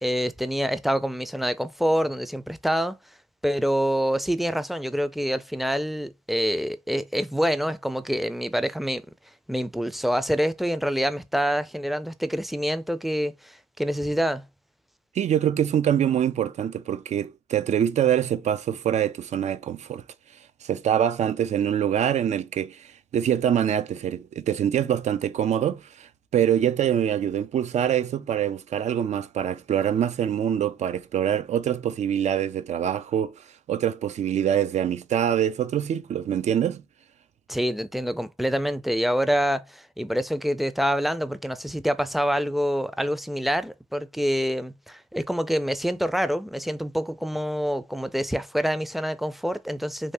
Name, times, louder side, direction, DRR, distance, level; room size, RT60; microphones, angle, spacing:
voice 1, 0.0-3.0 3.4-9.0 9.5-14.4 37.5-50.1, equal, ahead, 0.4 m, -26 dB
voice 2, 15.2-20.0 20.6-33.3 33.7-36.8, right 9 dB, 70° right, 0.4 m, -24 dB
2.8 x 2.7 x 3.3 m
cardioid pair, 65°, 12 cm